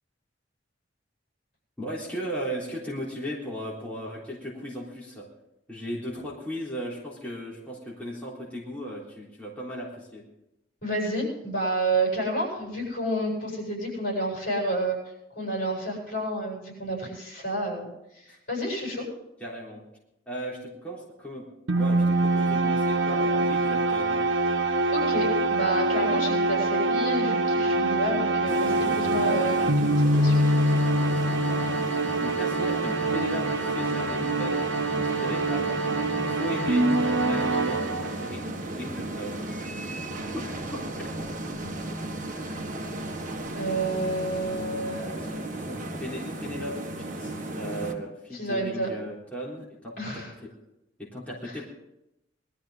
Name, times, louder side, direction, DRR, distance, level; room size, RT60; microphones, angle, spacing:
voice 1, 1.8-5.3 5.7-10.2 18.3-18.4 19.4-19.8 20.3-21.4 21.8-24.2 31.0-39.5 40.3-40.5 40.7-40.8 41.2-41.3 45.2-50.2 51.0-51.6, equal, 10° left, -6 dB, 3.8 m, -37 dB
voice 2, 10.8-15.0 15.3-19.1 24.9-30.4 43.5-45.2 48.3-48.9 50.0-50.3 51.4-51.6, right 1 dB, 50° left, -2 dB, 7.8 m, -30 dB
sound 1, 21.7-38.4, right 2 dB, 85° right, 1.2 m, -24 dB
sound 2, 28.5-47.9, right 1 dB, 45° right, 1.6 m, -35 dB
20.5 x 13.0 x 3.9 m, 0.86 s
head